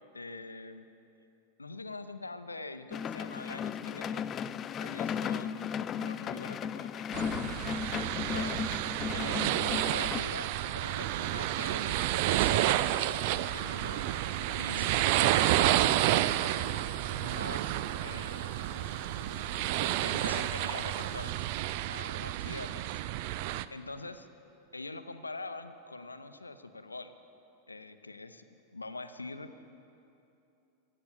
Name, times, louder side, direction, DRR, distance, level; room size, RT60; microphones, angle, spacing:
voice 1, 0.1-0.9 1.6-4.2 4.8-7.1 8.3-8.6 9.1-12.8 13.5-14.1 14.6-16.4 17.2-17.8 18.0-18.7 19.8-21.4 21.9-22.9 23.7-24.3 24.7-27.1 27.7-29.6, left 3 dB, 80° left, 10 dB, 0.7 m, -44 dB
sound 1, 2.9-10.2, left 7 dB, 25° left, 0.3 m, -35 dB
sound 2, 7.1-23.6, right 14 dB, 50° right, 0.4 m, -30 dB
sound 3, 10.8-21.3, equal, 85° right, 1.1 m, -47 dB
15.0 x 8.8 x 8.2 m, 2.8 s
figure-of-eight pair, 90°, 0 cm